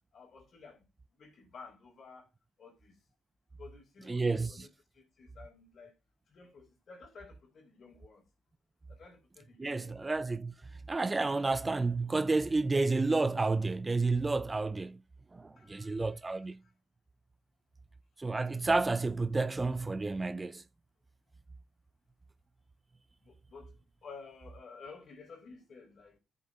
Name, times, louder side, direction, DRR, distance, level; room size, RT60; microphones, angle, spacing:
voice 1, 0.1-2.3 2.6-3.0 3.6-5.9 6.3-8.2 8.9-10.1 15.6-16.7 23.2-26.2, left 4 dB, 55° left, 4.5 m, -53 dB
voice 2, 4.1-4.5 9.6-10.5 10.9-15.0 15.3-16.6 18.2-20.6, right 3 dB, 25° right, 0.6 m, -30 dB
13.0 x 6.8 x 3.7 m
supercardioid pair, 55°, 0 cm